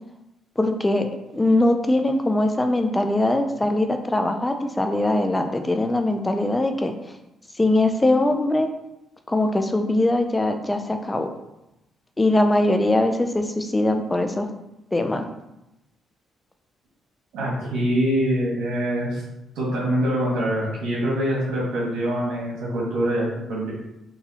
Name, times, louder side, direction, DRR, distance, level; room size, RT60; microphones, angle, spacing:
voice 1, 0.6-1.1 1.3-6.9 7.6-8.7 9.3-11.3 12.2-14.5 14.9-15.3, left 1 dB, 15° left, 6 dB, 0.3 m, -21 dB
voice 2, 17.3-19.2 19.5-23.7, equal, 85° right, -4 dB, 1.4 m, -24 dB
3.9 x 2.7 x 2.8 m, 0.91 s
cardioid pair, 90°, 0 cm